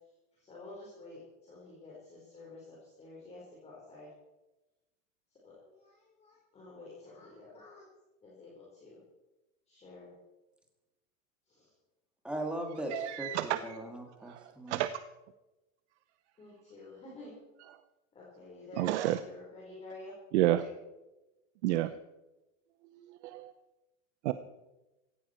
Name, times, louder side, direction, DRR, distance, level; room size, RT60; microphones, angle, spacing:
voice 1, 0.3-4.1 5.4-7.9 8.2-9.0 9.7-10.1 11.5-11.7 16.4-17.4 18.1-20.1, left 2 dB, 15° left, -5 dB, 4.4 m, -50 dB
voice 2, 12.2-14.8, right 1 dB, ahead, 2 dB, 2.2 m, -39 dB
voice 3, 12.9-13.6 14.2-14.9 18.8-19.2 20.3-20.6 21.6-21.9 23.2-23.5 24.2-24.3, right 15 dB, 60° right, 12 dB, 0.8 m, -29 dB
17.0 x 15.5 x 4.5 m, 1.0 s
supercardioid pair, 165°, 39 cm